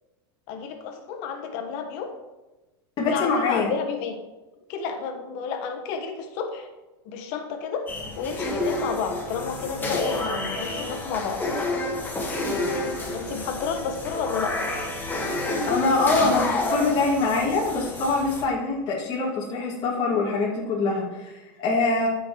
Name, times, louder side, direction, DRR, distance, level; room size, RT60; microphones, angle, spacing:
voice 1, 0.5-2.1 3.1-4.2 4.7-6.7 7.0-7.8 8.2-11.4 13.1-14.7, left 6 dB, 55° left, 5 dB, 1.3 m, -31 dB
voice 2, 3.0-3.7 15.6-22.1, left 3 dB, 35° left, -6 dB, 2.4 m, -24 dB
sound 1, 7.9-18.4, left 2 dB, 15° left, 1.6 m, -29 dB
13.5 x 6.3 x 3.1 m, 1.1 s
supercardioid pair, 135°, 13 cm